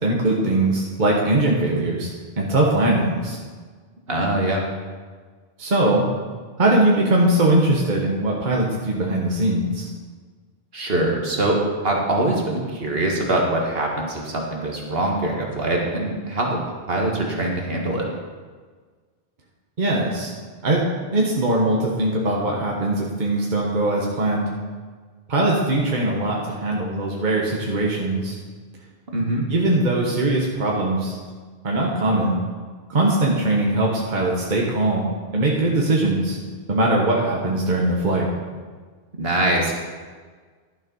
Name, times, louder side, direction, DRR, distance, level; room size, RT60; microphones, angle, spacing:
voice 1, 0.0-2.1 2.4-3.4 5.6-6.1 6.6-9.9 19.8-20.3 20.6-20.8 21.1-24.5 25.3-28.4 29.5-31.2 31.6-32.4 32.9-36.4 36.7-38.3, right 1 dB, 45° right, -2 dB, 1.4 m, -21 dB
voice 2, 4.1-4.6 10.7-11.6 11.8-16.6 16.9-18.1 29.1-29.4 39.2-39.7, right 1 dB, 60° right, -1 dB, 1.9 m, -23 dB
11.5 x 7.2 x 5.4 m, 1.5 s
omnidirectional pair, 1.1 m